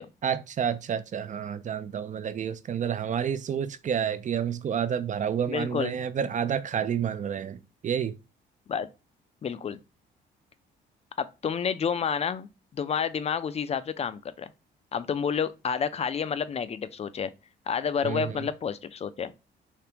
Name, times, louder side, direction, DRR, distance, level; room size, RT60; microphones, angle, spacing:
voice 1, 0.2-8.1 18.0-18.4, right 8 dB, 40° right, 0.4 m, -29 dB
voice 2, 5.5-6.0 8.7-8.9 9.4-9.8 11.2-14.5 14.9-17.3 17.7-19.3, left 6 dB, 30° left, 0.4 m, -30 dB
3.4 x 2.4 x 2.9 m
cardioid pair, 90°, 20 cm